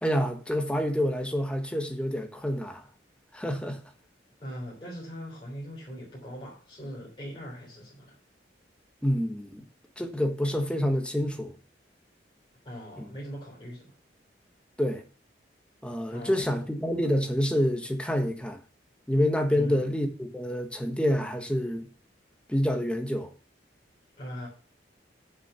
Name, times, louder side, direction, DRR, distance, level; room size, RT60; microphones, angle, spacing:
voice 1, 0.0-2.8 3.3-3.8 9.0-9.6 10.0-11.5 13.0-13.1 14.8-15.0 15.8-18.6 19.1-21.9 22.5-23.3, equal, 5° left, 1.3 m, -27 dB
voice 2, 4.4-8.2 12.6-13.9 16.1-16.6 19.5-20.0 24.2-24.5, equal, 25° left, 3.5 m, -41 dB
7.4 x 6.7 x 6.9 m
head